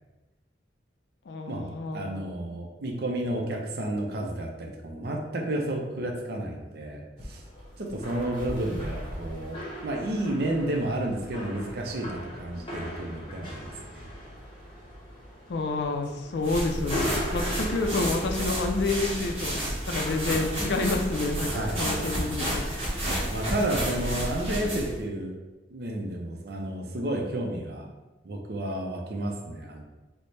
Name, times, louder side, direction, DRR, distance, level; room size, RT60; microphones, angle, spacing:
voice 1, 1.3-2.1 15.5-17.1 17.3-19.5 19.9-22.6, left 3 dB, 70° left, 5 dB, 0.4 m, -29 dB
voice 2, 1.9-7.4 7.8-14.0 21.4-21.8 22.6-25.4 25.7-27.9 28.2-29.8, right 1 dB, 60° right, 2 dB, 0.5 m, -31 dB
sound 1, 7.2-24.3, equal, 30° left, 0.8 m, -40 dB
sound 2, 16.4-25.0, equal, 35° right, 1.3 m, -31 dB
4.2 x 2.1 x 3.2 m, 1.1 s
head